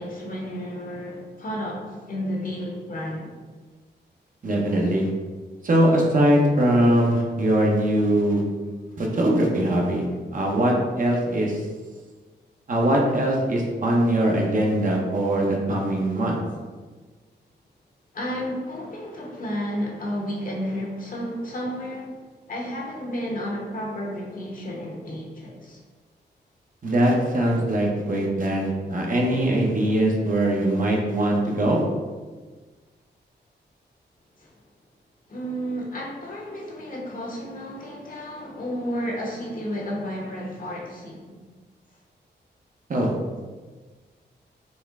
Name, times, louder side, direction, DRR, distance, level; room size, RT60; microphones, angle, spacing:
voice 1, 0.0-3.3 8.9-9.0 18.1-22.1 22.5-25.8 34.4-34.5 35.3-41.4, equal, 50° left, -2 dB, 1.0 m, -32 dB
voice 2, 4.4-5.1 5.6-8.4 9.0-10.0 10.3-11.6 12.7-16.4 26.8-31.8 42.9-43.1, right 1 dB, 45° right, -1 dB, 0.8 m, -21 dB
4.2 x 2.2 x 3.6 m, 1.4 s
cardioid pair, 70°, 18 cm